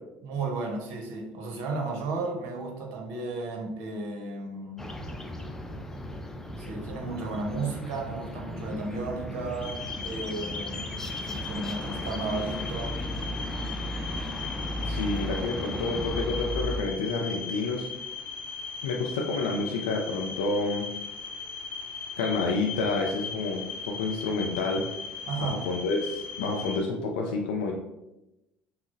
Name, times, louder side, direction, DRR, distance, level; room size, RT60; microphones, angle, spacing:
voice 1, 0.2-4.8 6.6-10.9 11.3-13.0 25.3-25.6, right 3 dB, 60° right, 2 dB, 0.8 m, -34 dB
sound 1, 4.8-16.8, left 1 dB, 10° left, 0.4 m, -35 dB
sound 2, 9.6-26.8, left 5 dB, 50° left, 0.8 m, -38 dB
voice 2, 14.9-17.9 18.8-20.9 22.2-24.8 25.4-27.7, left 3 dB, 75° left, 0 dB, 0.4 m, -29 dB
5.7 x 2.0 x 2.5 m, 0.93 s
figure-of-eight pair, 60°, 5 cm